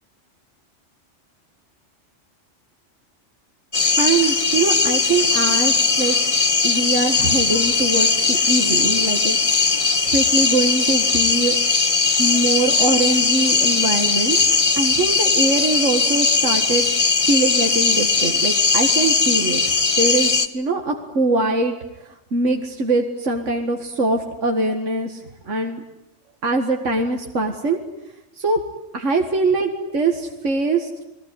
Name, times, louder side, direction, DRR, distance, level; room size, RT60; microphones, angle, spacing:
sound 1, 3.7-20.5, left 4 dB, 30° left, 1.1 m, -19 dB
voice 1, 4.0-6.2 6.6-9.6 10.1-11.6 12.2-14.4 14.8-19.6 20.0-21.8 22.3-25.2 25.5-25.8 26.4-27.8 28.4-28.6 28.9-30.9, right 2 dB, 75° right, 3 dB, 2.2 m, -22 dB
29.5 x 20.0 x 9.8 m, 0.91 s
omnidirectional pair, 1.3 m